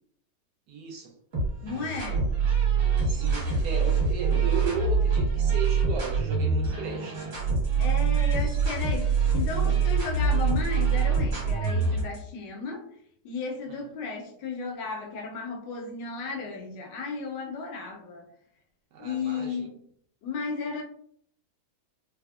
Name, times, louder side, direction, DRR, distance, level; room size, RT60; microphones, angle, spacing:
voice 1, 0.7-1.1 3.1-7.2 13.7-13.8 18.9-19.7, right 5 dB, 70° right, 0 dB, 1.1 m, -35 dB
sound 1, 1.3-12.2, right 5 dB, 50° right, 1.4 m, -25 dB
voice 2, 1.6-2.3 7.8-12.9 13.2-18.3 19.0-19.8 20.2-20.8, left 4 dB, 80° left, 2 dB, 1.2 m, -34 dB
3.4 x 2.0 x 2.3 m, 0.66 s
omnidirectional pair, 1.9 m